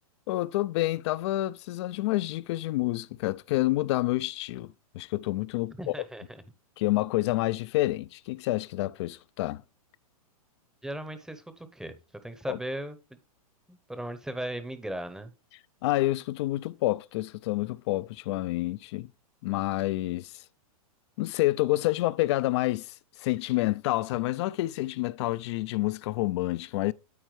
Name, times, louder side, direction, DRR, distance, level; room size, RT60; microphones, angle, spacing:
voice 1, 0.3-5.9 6.8-9.6 12.5-12.6 15.8-19.1 19.4-20.4 21.2-26.9, left 18 dB, 50° left, 0.4 m, -28 dB
voice 2, 5.8-6.4 10.8-12.0 12.2-13.2 13.7-15.3, right 1 dB, 5° right, 0.8 m, -37 dB
13.0 x 4.4 x 3.2 m
hypercardioid pair, 130°, 19 cm